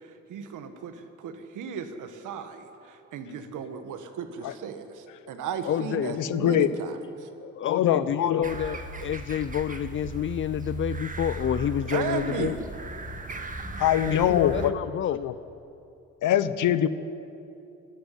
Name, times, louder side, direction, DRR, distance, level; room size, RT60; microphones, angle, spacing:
voice 1, 0.0-7.3 11.9-12.6, right 6 dB, 85° right, 8 dB, 1.9 m, -35 dB
voice 2, 5.6-6.2 7.4-12.6 14.1-15.2, left 10 dB, 40° left, 16 dB, 0.4 m, -29 dB
voice 3, 6.2-6.7 7.7-8.4 13.8-14.7 15.1-15.3 16.2-16.9, left 10 dB, 80° left, 13 dB, 1.1 m, -23 dB
sound 1, 8.4-14.7, right 3 dB, 25° right, 1.8 m, -36 dB
26.5 x 11.5 x 9.4 m, 2.8 s
cardioid pair, 90°, 30 cm